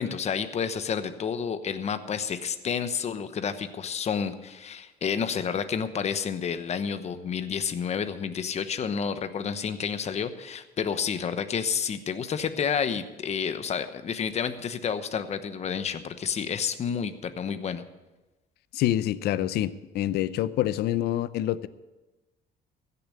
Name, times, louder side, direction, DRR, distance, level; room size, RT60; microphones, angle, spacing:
voice 1, 0.0-17.8, left 7 dB, 40° left, 10 dB, 1.0 m, -30 dB
voice 2, 18.7-21.7, left 13 dB, 75° left, 16 dB, 0.6 m, -26 dB
15.5 x 7.0 x 8.3 m, 1.1 s
cardioid pair, 110°, 17 cm